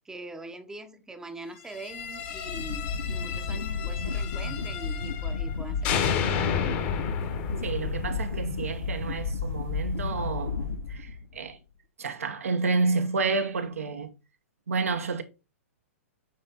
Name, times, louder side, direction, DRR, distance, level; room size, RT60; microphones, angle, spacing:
voice 1, 0.0-6.8, right 2 dB, 5° right, 0.9 m, -43 dB
sound 1, 1.7-5.5 5.8-8.9, left 7 dB, 40° left, 1.3 m, -32 dB
sound 2, 2.0-11.5, left 5 dB, 75° left, 1.7 m, -32 dB
voice 2, 7.6-11.6 12.0-14.1 14.7-15.2, right 4 dB, 70° right, 1.1 m, -30 dB
9.1 x 3.4 x 4.2 m
figure-of-eight pair, 110°, 8 cm